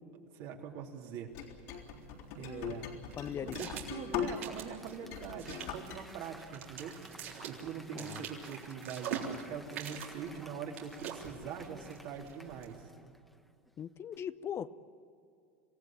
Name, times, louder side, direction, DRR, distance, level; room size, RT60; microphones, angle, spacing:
voice 1, 0.3-1.3 2.4-2.9 3.4-7.0 7.4-12.9, right 7 dB, 60° right, 1 dB, 3.4 m, -43 dB
sound 1, 1.3-4.7 5.0-6.0, left 8 dB, 70° left, 3.7 m, -40 dB
sound 2, 1.7-12.8, right 7 dB, 80° right, 3.7 m, -45 dB
voice 2, 3.2-4.0 7.9-8.3 13.8-14.7, left 9 dB, 35° left, 14 dB, 0.7 m, -40 dB
Applause / Crowd, 4.3-13.7 14.1-14.2, equal, ahead, 1.4 m, -55 dB
26.5 x 16.0 x 8.9 m, 2.4 s
hypercardioid pair, 100°, 7 cm